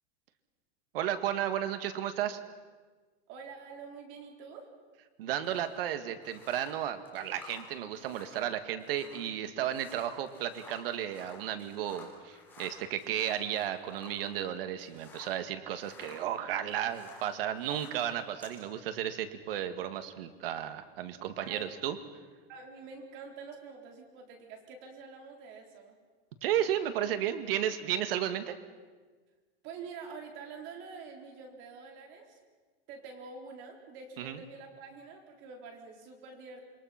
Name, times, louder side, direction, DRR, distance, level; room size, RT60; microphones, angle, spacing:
voice 1, 0.9-2.4 5.2-22.0 26.4-28.6 34.2-34.4, right 10 dB, 70° right, 9 dB, 1.9 m, -33 dB
voice 2, 3.3-4.7 21.4-21.7 22.5-26.0 29.6-32.4 32.9-36.6, right 5 dB, 40° right, 3 dB, 3.9 m, -47 dB
sound 1, 5.4-15.4 15.7-18.6, left 4 dB, 5° left, 5.3 m, -53 dB
27.5 x 22.5 x 5.9 m, 1.4 s
supercardioid pair, 165°, 30 cm